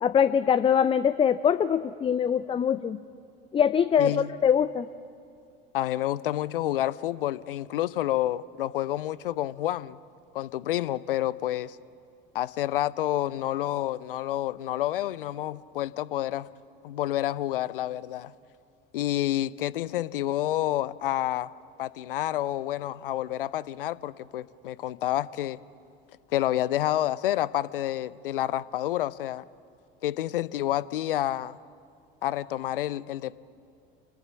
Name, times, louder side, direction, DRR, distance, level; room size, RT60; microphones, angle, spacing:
voice 1, 0.0-3.0 3.5-4.1 4.4-4.9, left 8 dB, 20° left, 15 dB, 0.5 m, -23 dB
voice 2, 4.0-4.3 5.7-10.0 10.3-11.8 12.3-16.5 16.8-18.3 18.9-21.5 21.8-25.6 26.3-29.5 30.0-31.6 32.2-33.4, left 13 dB, 70° left, 20 dB, 0.6 m, -29 dB
27.5 x 20.5 x 7.3 m, 2.4 s
figure-of-eight pair, 70°, 29 cm